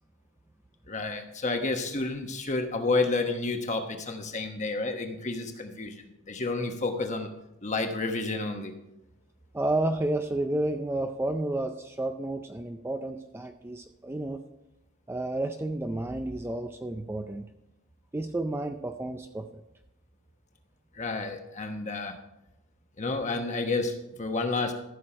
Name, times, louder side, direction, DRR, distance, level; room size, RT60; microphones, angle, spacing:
voice 1, 0.9-7.3 7.6-8.7 20.9-22.1 23.0-24.7, left 3 dB, 35° left, 5 dB, 1.1 m, -30 dB
voice 2, 9.5-14.4 15.1-17.5 18.1-19.5, right 1 dB, 10° right, 6 dB, 0.4 m, -31 dB
14.0 x 6.5 x 4.4 m, 0.87 s
head